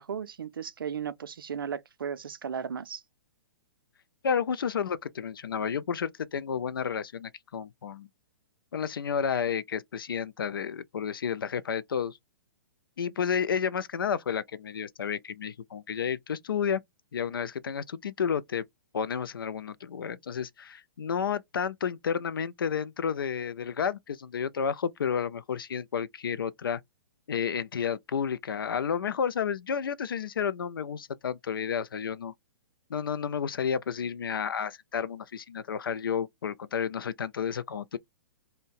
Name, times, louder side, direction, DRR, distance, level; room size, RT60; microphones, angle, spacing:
voice 1, 0.0-3.0, right 7 dB, 80° right, 0.4 m, -35 dB
voice 2, 4.2-8.1 8.7-12.2 13.0-16.8 17.1-18.6 18.9-26.8 27.3-32.3 32.9-38.0, left 7 dB, 80° left, 0.4 m, -31 dB
2.5 x 2.1 x 3.7 m
hypercardioid pair, 125°, 11 cm